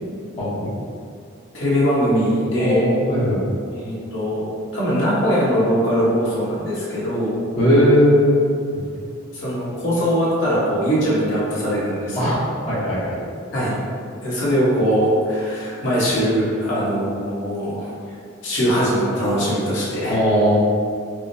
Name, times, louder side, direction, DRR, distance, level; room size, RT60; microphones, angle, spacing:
voice 1, 0.4-0.7 2.6-3.5 7.6-8.8 12.2-13.2 20.1-20.6, equal, 30° left, -12 dB, 0.8 m, -18 dB
voice 2, 1.5-2.8 3.7-4.5 4.7-7.3 9.3-12.2 13.5-13.7 14.2-17.9 18.4-20.2, equal, 60° left, -8 dB, 1.1 m, -21 dB
4.8 x 2.1 x 2.6 m, 2.3 s
head